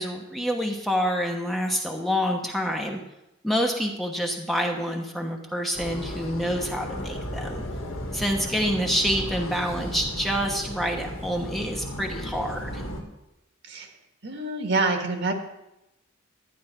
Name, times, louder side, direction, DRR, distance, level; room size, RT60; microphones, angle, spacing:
voice 1, 0.0-3.0 3.4-7.6 8.1-12.8, equal, ahead, 1 dB, 1.1 m, -27 dB
sound 1, 5.7-13.0, equal, 80° left, 2.0 m, -35 dB
voice 2, 14.2-15.3, right 3 dB, 60° right, 3 dB, 1.7 m, -26 dB
12.0 x 10.0 x 4.5 m, 0.91 s
head